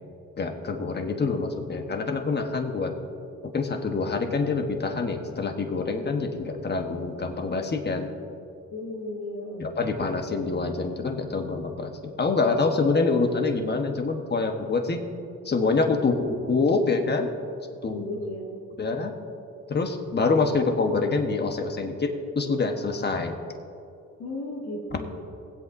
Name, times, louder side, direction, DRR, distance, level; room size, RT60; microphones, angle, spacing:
voice 1, 0.4-2.9 3.4-8.1 9.6-15.0 15.4-16.1 16.5-17.3 17.8-18.1 18.8-19.1 19.7-23.4, left 4 dB, 35° left, 4 dB, 1.2 m, -26 dB
voice 2, 8.7-9.7 17.9-18.7 24.2-25.0, left 1 dB, 65° left, -5 dB, 2.0 m, -35 dB
20.0 x 8.1 x 2.7 m, 2.6 s
cardioid pair, 90°, 30 cm